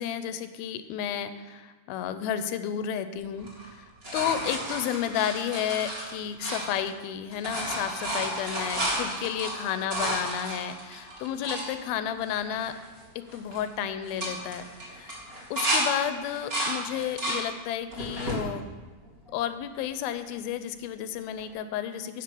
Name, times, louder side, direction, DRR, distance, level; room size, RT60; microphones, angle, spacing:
voice 1, 0.0-12.8 13.2-15.2 15.5-18.7 19.3-22.2, left 9 dB, 85° left, 11 dB, 2.5 m, -32 dB
sound 1, 3.4-7.1 7.3-11.7 12.2-12.3 12.6-13.0 13.3-13.6 14.0-15.8 16.2-17.4 17.9-18.4 19.0-19.8 21.4-21.5, right 1 dB, 20° right, 1.8 m, -32 dB
10.5 x 6.3 x 7.0 m, 1.3 s
omnidirectional pair, 4.3 m